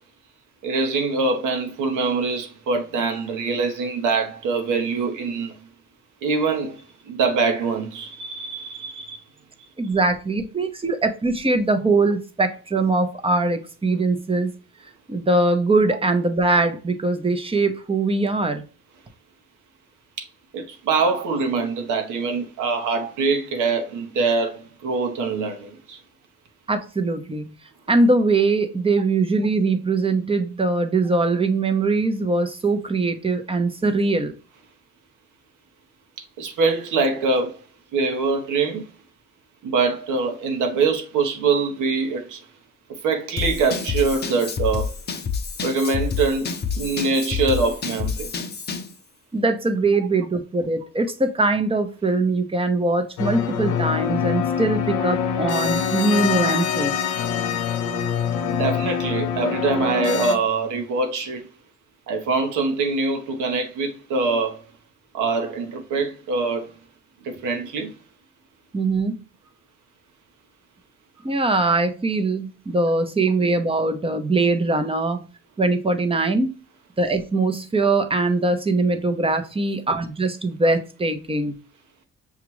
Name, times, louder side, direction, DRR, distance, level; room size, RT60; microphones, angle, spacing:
voice 1, 0.6-5.5 6.2-6.8 7.1-9.2 20.2-20.3 20.5-26.0 36.4-37.6 37.9-38.8 39.6-42.4 43.0-44.9 45.6-48.3 58.6-61.5 62.1-64.6 65.1-66.7 67.2-67.9, right 4 dB, 85° right, 1.0 m, -24 dB
voice 2, 9.8-14.5 14.8-18.6 26.7-27.6 27.9-34.3 49.3-57.0 68.7-69.2 71.2-75.3 75.6-76.6 77.0-81.6, right 3 dB, 20° right, 0.7 m, -22 dB
Drum kit / Drum, 43.4-48.9, left 6 dB, 35° left, 0.7 m, -28 dB
sound 1, 53.2-60.4, left 7 dB, 80° left, 0.8 m, -24 dB
6.0 x 2.4 x 3.0 m
cardioid pair, 90°, 30 cm